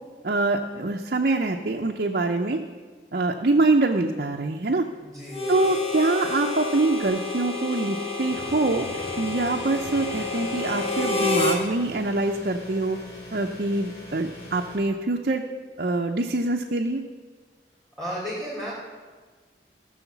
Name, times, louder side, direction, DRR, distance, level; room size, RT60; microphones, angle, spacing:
voice 1, 0.2-2.6 3.1-4.9 5.5-8.9 9.2-13.0 13.3-15.4 15.8-17.0, right 2 dB, 55° right, 1 dB, 0.6 m, -24 dB
voice 2, 5.0-5.7 18.0-18.8, equal, ahead, -10 dB, 3.1 m, -34 dB
Harmonica, 5.3-11.6, left 3 dB, 35° left, 1.4 m, -29 dB
sound 1, 8.3-14.8, left 1 dB, 70° left, 4.2 m, -42 dB
15.5 x 6.4 x 7.1 m, 1.4 s
head